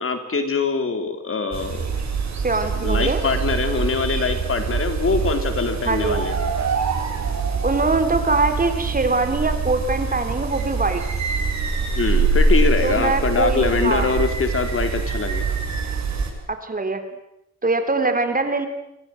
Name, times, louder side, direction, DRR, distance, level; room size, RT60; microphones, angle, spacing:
voice 1, 0.0-1.9 2.8-6.3 12.0-15.4, left 4 dB, 50° left, 7 dB, 3.7 m, -23 dB
sound 1, 1.5-16.3, right 4 dB, 70° right, 7.3 m, -24 dB
voice 2, 2.4-3.2 5.8-6.2 7.6-11.0 12.8-14.1 16.5-17.0 17.6-18.7, right 3 dB, 30° right, 8 dB, 3.5 m, -22 dB
29.5 x 24.5 x 7.9 m, 0.80 s
wide cardioid pair, 145°, 29 cm